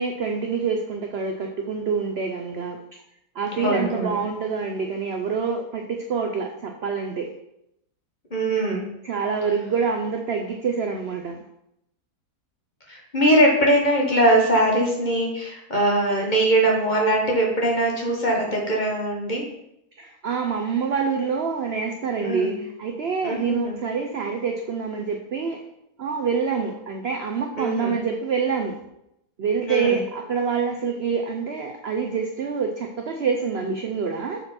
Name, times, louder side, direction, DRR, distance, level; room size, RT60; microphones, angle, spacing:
voice 1, 0.0-2.8 3.3-7.3 9.0-11.4 20.0-25.6 26.0-28.8 29.4-34.4, right 5 dB, 60° right, 3 dB, 0.6 m, -26 dB
voice 2, 3.5-4.2 8.3-8.9 12.9-19.4 22.2-22.6 23.2-23.8 27.6-28.0 29.7-30.0, right 1 dB, 30° left, -2 dB, 1.2 m, -21 dB
7.0 x 4.2 x 4.3 m, 0.81 s
omnidirectional pair, 1.7 m